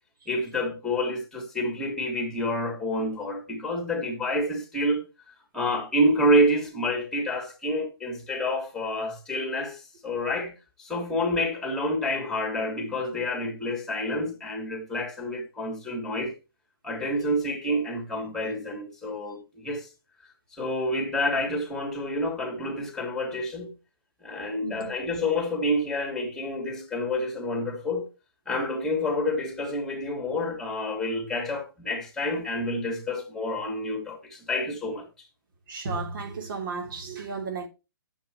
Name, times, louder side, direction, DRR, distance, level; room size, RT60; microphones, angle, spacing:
voice 1, 0.3-5.0 5.5-10.5 10.8-16.3 16.8-19.9 20.5-23.7 24.2-28.1 28.5-35.1, left 1 dB, 5° left, 3.5 m, -28 dB
voice 2, 24.6-24.9 35.7-37.7, right 4 dB, 60° right, 3.2 m, -33 dB
10.5 x 7.8 x 3.1 m
figure-of-eight pair, 125°, 12 cm